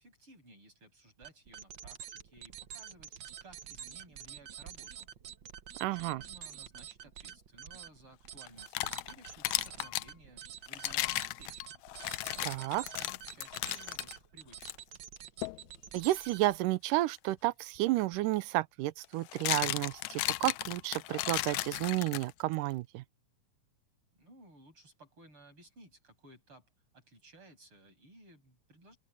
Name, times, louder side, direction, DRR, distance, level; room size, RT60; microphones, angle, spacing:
voice 1, 0.0-3.2 3.4-5.1 5.9-11.7 12.3-14.7 24.1-26.7 26.9-29.0, right 1 dB, 40° right, 8.2 m, -58 dB
sound 1, 1.2-16.7, right 9 dB, 70° right, 1.1 m, -48 dB
voice 2, 5.8-6.2 12.5-12.8 15.9-23.0, right 17 dB, 85° right, 2.3 m, -31 dB
sound 2, 8.5-10.1 10.7-14.1 14.6-14.8 15.4-15.6 17.8-17.9 19.0-22.5, left 18 dB, 80° left, 1.7 m, -35 dB
open air
omnidirectional pair, 3.7 m